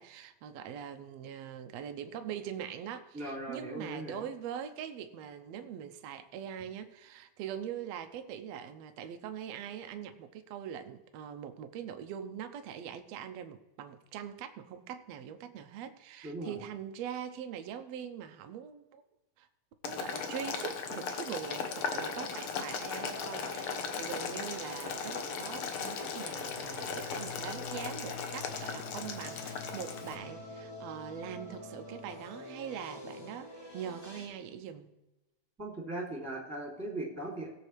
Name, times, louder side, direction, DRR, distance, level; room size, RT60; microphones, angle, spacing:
voice 1, 0.0-19.0 19.4-19.5 19.8-34.9, right 9 dB, 75° right, 8 dB, 1.8 m, -42 dB
voice 2, 3.1-4.2 16.2-16.6 35.6-37.5, right 2 dB, 5° right, -1 dB, 2.5 m, -39 dB
Boiling, 19.8-30.1, left 6 dB, 65° left, 1.5 m, -38 dB
sound 1, 22.8-30.4, left 5 dB, 80° left, 3.1 m, -49 dB
sound 2, 22.9-34.3, left 1 dB, 25° left, 2.6 m, -47 dB
18.5 x 7.5 x 3.3 m, 1.0 s
omnidirectional pair, 3.5 m